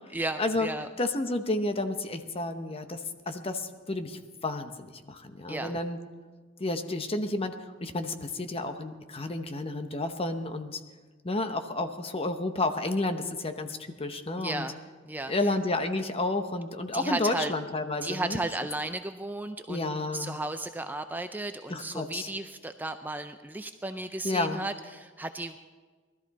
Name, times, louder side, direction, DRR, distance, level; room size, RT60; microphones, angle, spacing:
voice 1, 0.1-0.9 5.5-5.8 14.4-14.7 15.0-15.5 16.9-17.5 18.0-25.6, right 2 dB, 10° right, 8 dB, 0.4 m, -34 dB
voice 2, 1.0-6.0 6.6-10.8 11.2-14.6 15.3-18.4 19.7-20.4 21.7-22.3 24.2-24.6, left 2 dB, 30° left, 7 dB, 0.9 m, -31 dB
19.5 x 13.0 x 4.1 m, 1.4 s
head